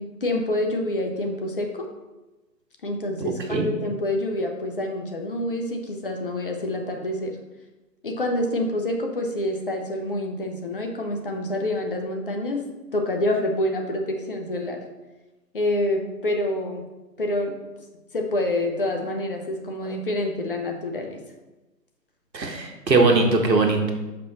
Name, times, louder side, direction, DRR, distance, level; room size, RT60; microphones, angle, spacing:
voice 1, 0.0-1.9 2.8-7.4 8.0-12.6 12.9-14.8 15.5-16.8 17.2-17.5 18.1-21.2, left 1 dB, 35° left, 3 dB, 0.7 m, -27 dB
voice 2, 22.3-23.9, right 3 dB, 85° right, 3 dB, 1.4 m, -20 dB
5.8 x 5.4 x 4.0 m, 1.1 s
figure-of-eight pair, 150°, 49 cm